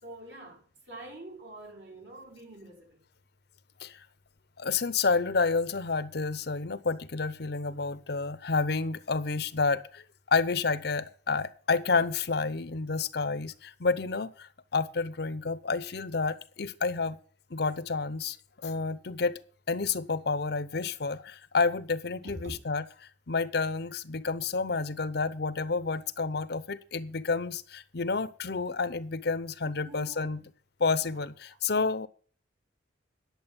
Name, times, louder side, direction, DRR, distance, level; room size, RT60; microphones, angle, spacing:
voice 1, 0.0-3.0 22.2-22.6 29.8-30.4 31.0-31.2, right 1 dB, 65° right, 4.2 m, -46 dB
voice 2, 4.6-10.0 10.3-17.2 17.5-18.4 18.6-19.4 19.7-22.9 23.3-30.4 30.8-32.1, left 4 dB, 55° left, 0.7 m, -29 dB
10.5 x 7.5 x 7.1 m
head